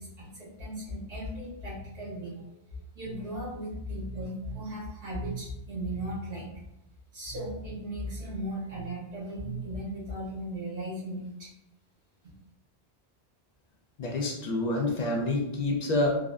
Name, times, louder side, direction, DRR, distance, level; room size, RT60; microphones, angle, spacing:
voice 1, 0.0-6.7 7.1-11.5, right 1 dB, 80° right, -8 dB, 1.6 m, -37 dB
voice 2, 14.0-16.2, left 2 dB, 55° left, -1 dB, 0.5 m, -27 dB
3.5 x 2.1 x 2.4 m, 0.86 s
omnidirectional pair, 1.1 m